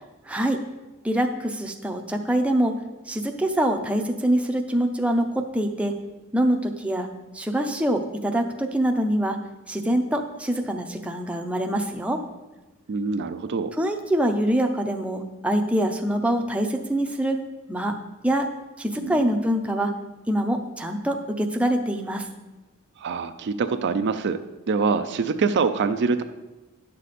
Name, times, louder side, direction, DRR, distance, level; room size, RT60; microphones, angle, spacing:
voice 1, 0.3-0.6 1.0-2.7 3.1-5.9 6.3-7.1 7.3-9.4 9.7-12.2 13.8-17.4 17.7-17.9 18.2-18.5 18.8-19.9 20.3-22.3, right 1 dB, 5° right, 3 dB, 0.6 m, -24 dB
voice 2, 12.9-13.7 19.0-19.2 23.0-24.4 24.7-26.2, right 4 dB, 50° right, 8 dB, 0.4 m, -24 dB
10.5 x 6.7 x 4.2 m, 1.1 s
head